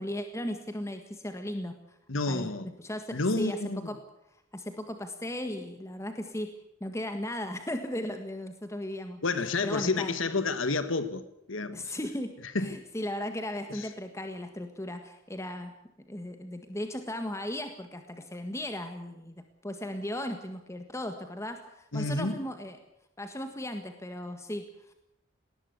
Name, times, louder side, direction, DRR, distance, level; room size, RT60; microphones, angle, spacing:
voice 1, 0.0-2.0 2.3-2.5 2.8-3.6 3.8-4.0 4.5-6.5 6.8-9.2 9.6-10.2 11.7-15.7 16.1-22.8 23.2-24.9, left 1 dB, 15° left, 1.7 m, -36 dB
voice 2, 2.1-2.7 3.1-3.9 9.2-11.2 11.5-11.9 12.5-12.8 13.7-13.9 21.9-22.4, left 3 dB, 85° left, 1.6 m, -30 dB
20.5 x 19.0 x 8.1 m
head